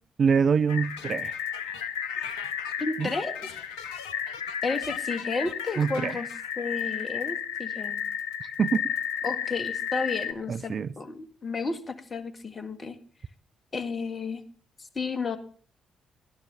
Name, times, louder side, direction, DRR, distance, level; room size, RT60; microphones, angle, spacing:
voice 1, 0.2-1.5 3.0-3.1 5.8-6.2 8.4-8.9 10.5-10.9, right 6 dB, 45° right, 0.5 m, -25 dB
sound 1, 0.7-10.3, left 8 dB, 75° left, 0.8 m, -33 dB
voice 2, 2.8-3.5 4.6-6.3 6.6-8.0 9.2-13.0 13.7-14.4 14.8-15.4, left 4 dB, 35° left, 1.8 m, -32 dB
18.5 x 12.0 x 3.4 m
figure-of-eight pair, 40°, 0 cm